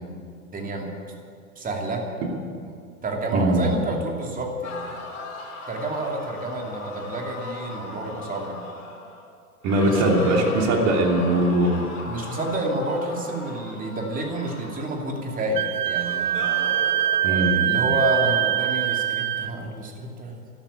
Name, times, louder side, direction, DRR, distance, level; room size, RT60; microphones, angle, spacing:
voice 1, 0.5-0.9 1.6-2.0 2.6-2.7 3.0-5.0 5.7-8.6 9.8-10.3 12.0-16.4 17.2-20.5, right 1 dB, 20° right, 1 dB, 2.8 m, -29 dB
voice 2, 3.3-3.7 9.6-11.9 17.2-17.6, right 1 dB, 35° right, 1 dB, 2.9 m, -21 dB
sound 1, 4.6-9.3 9.6-15.5 16.0-17.4, left 3 dB, 75° left, 4.1 m, -38 dB
Wind instrument woodwind instrument, 15.6-19.5, right 12 dB, 85° right, 0.6 m, -23 dB
13.0 x 12.5 x 8.7 m, 2.3 s
hypercardioid pair, 110°, 45 cm